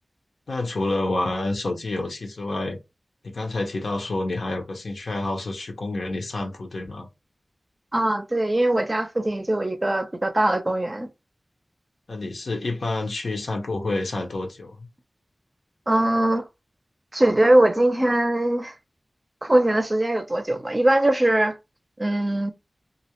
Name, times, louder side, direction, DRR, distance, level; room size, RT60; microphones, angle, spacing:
voice 1, 0.5-2.8 3.2-7.1 12.1-14.9, left 2 dB, 85° left, 0.7 m, -28 dB
voice 2, 7.9-11.1 15.9-16.5 17.1-18.7 19.4-21.6 22.0-22.5, right 1 dB, 30° right, 0.5 m, -21 dB
2.4 x 2.1 x 2.9 m
wide cardioid pair, 65°, 0 cm